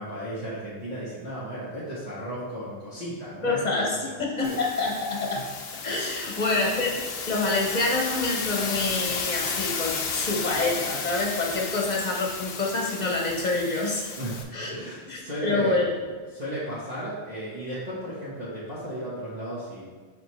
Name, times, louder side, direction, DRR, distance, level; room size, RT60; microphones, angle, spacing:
voice 1, 0.0-4.2 4.4-4.5 6.2-6.4 14.2-15.9 16.3-19.9, equal, 40° right, -10 dB, 1.4 m, -35 dB
voice 2, 3.4-5.4 5.8-7.0 7.3-14.1 14.5-14.7 15.1-15.9, left 2 dB, 40° left, -1 dB, 1.2 m, -27 dB
sound 1, 4.4-14.4, left 5 dB, 70° left, 0.9 m, -33 dB
6.1 x 5.2 x 3.2 m, 1.5 s
omnidirectional pair, 1.1 m